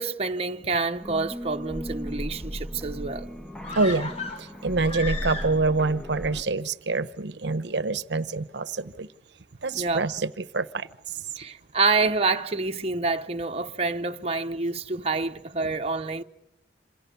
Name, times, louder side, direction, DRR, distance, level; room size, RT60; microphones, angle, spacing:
voice 1, 0.0-3.3 9.7-10.1 11.4-16.2, right 3 dB, 35° right, 1.0 m, -27 dB
sound 1, 1.0-6.4, equal, 5° left, 1.2 m, -36 dB
sound 2, 3.6-5.9 6.2-6.3, left 4 dB, 35° left, 2.7 m, -36 dB
voice 2, 3.8-4.1 4.4-9.1 9.6-10.9, right 3 dB, 70° right, 1.0 m, -26 dB
28.5 x 26.5 x 6.9 m
head